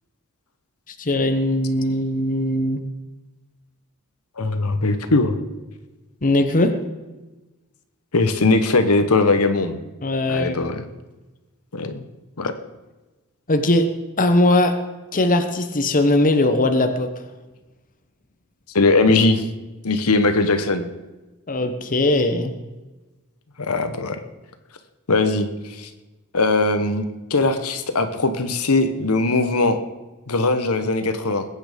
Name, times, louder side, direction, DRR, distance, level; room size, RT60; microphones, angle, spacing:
voice 1, 1.0-2.8 6.2-6.7 10.0-10.6 13.5-13.9 14.2-14.8 15.1-17.1 21.5-22.5, left 1 dB, 40° left, 7 dB, 1.1 m, -19 dB
voice 2, 4.4-5.4 8.1-9.8 10.3-10.8 11.7-12.0 12.4-12.5 18.7-19.5 19.8-20.9 23.6-24.2 25.1-25.9 26.3-29.8 30.3-31.5, left 3 dB, 75° left, 8 dB, 1.2 m, -20 dB
21.0 x 8.9 x 5.2 m, 1.1 s
head